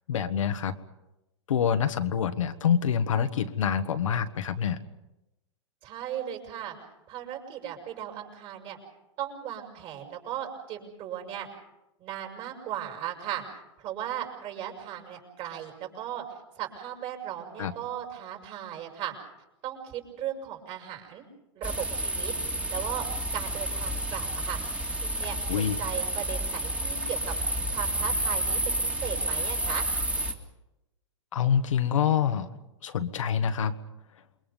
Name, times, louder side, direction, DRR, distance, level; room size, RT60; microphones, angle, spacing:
voice 1, 0.1-0.7 1.5-4.8 17.6-17.7 25.5-25.8 31.3-32.5 32.8-33.7, left 8 dB, 85° left, 8 dB, 1.6 m, -26 dB
voice 2, 5.8-6.7 7.1-8.8 9.2-11.5 12.0-13.4 13.8-19.1 19.6-21.2 21.5-22.3 22.7-23.0 23.3-24.6 25.0-27.4 27.7-29.9, right 11 dB, 40° right, 1 dB, 6.4 m, -37 dB
sound 1, 21.6-30.3, right 1 dB, 5° right, 2.4 m, -30 dB
28.5 x 23.0 x 5.4 m, 0.93 s
hypercardioid pair, 125°, 16 cm